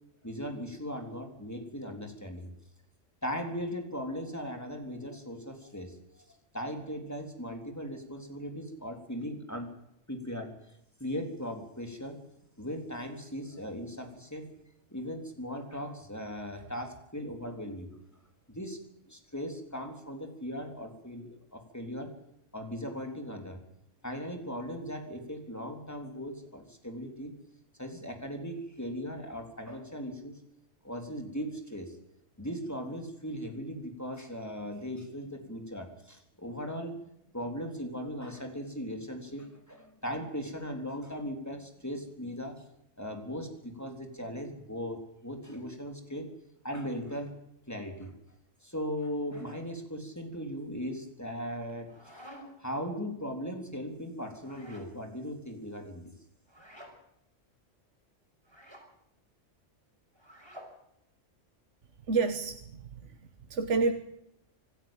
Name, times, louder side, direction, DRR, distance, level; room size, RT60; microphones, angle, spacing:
voice 1, 0.2-2.5 3.2-6.0 6.5-9.7 10.1-10.6 11.0-12.2 12.6-14.5 14.9-17.9 18.5-18.8 19.1-22.1 22.5-23.6 24.0-27.3 27.8-30.4 30.8-31.9 32.4-42.6 43.0-46.3 46.6-47.3 47.7-48.1 48.6-51.9 52.6-56.1, equal, 15° left, 4 dB, 3.6 m, -38 dB
sound 1, 51.6-52.7 54.4-54.9 56.5-57.0 58.4-58.9 60.2-60.8, equal, 20° right, 5.6 m, -50 dB
voice 2, 62.1-63.2 63.5-63.9, right 4 dB, 70° right, 8 dB, 1.6 m, -29 dB
26.5 x 13.5 x 9.0 m, 0.79 s
omnidirectional pair, 1.3 m